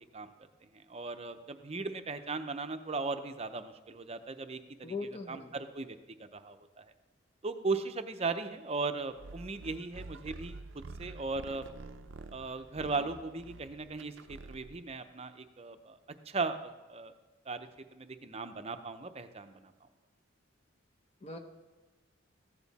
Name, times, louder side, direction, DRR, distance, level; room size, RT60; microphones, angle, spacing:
voice 1, 0.7-4.9 5.3-6.9 7.4-10.6 11.0-11.7 12.3-16.0 16.3-17.1 17.5-19.7, right 3 dB, 30° right, 9 dB, 0.6 m, -37 dB
voice 2, 4.8-5.5 21.2-21.4, left 4 dB, 30° left, 4 dB, 0.8 m, -40 dB
sound 1, 9.2-14.9, right 3 dB, 65° right, 0.5 m, -48 dB
15.0 x 9.3 x 4.1 m, 1.2 s
head